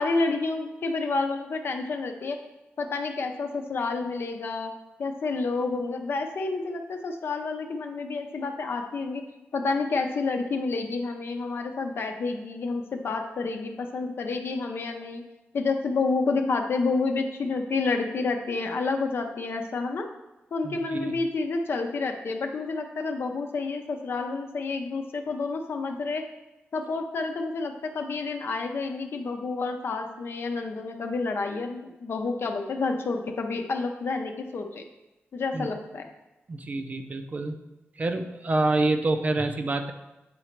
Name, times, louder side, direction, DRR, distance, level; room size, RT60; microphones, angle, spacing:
voice 1, 0.0-2.4 2.8-4.7 5.0-9.2 9.5-15.2 15.5-20.1 20.5-26.2 26.7-34.8 35.3-36.1, left 3 dB, 60° left, 4 dB, 0.7 m, -29 dB
voice 2, 20.6-21.2 35.5-35.7 36.5-37.6 38.0-39.9, right 2 dB, 35° right, 7 dB, 0.5 m, -27 dB
8.4 x 3.9 x 4.5 m, 1.0 s
wide cardioid pair, 140°, 4 cm